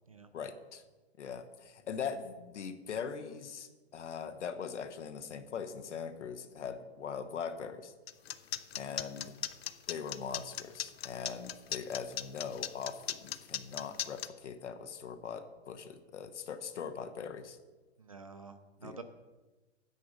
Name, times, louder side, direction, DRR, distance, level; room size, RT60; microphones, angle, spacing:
voice 1, 0.3-0.8 1.2-7.9 8.8-9.3 9.9-17.6 18.8-19.0, left 6 dB, 75° left, 10 dB, 1.2 m, -41 dB
sound 1, 8.1-14.3, left 10 dB, 60° left, 0.6 m, -37 dB
voice 2, 8.7-9.0 18.0-19.0, right 4 dB, 30° right, 8 dB, 0.4 m, -49 dB
9.5 x 8.2 x 5.1 m, 1.2 s
hypercardioid pair, 175°, 35 cm